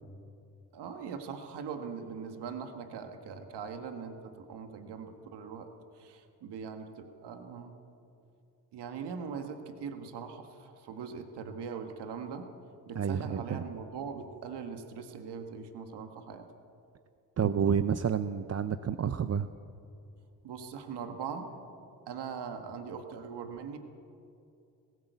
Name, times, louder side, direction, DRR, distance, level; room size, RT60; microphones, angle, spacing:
voice 1, 0.7-5.7 5.9-7.8 8.7-12.5 12.9-16.5 20.4-21.6 22.1-23.8, right 6 dB, 75° right, 6 dB, 1.7 m, -41 dB
voice 2, 12.9-13.7 17.4-19.5, right 7 dB, 40° right, 11 dB, 0.7 m, -29 dB
19.0 x 16.5 x 8.1 m, 2.6 s
supercardioid pair, 70°, 41 cm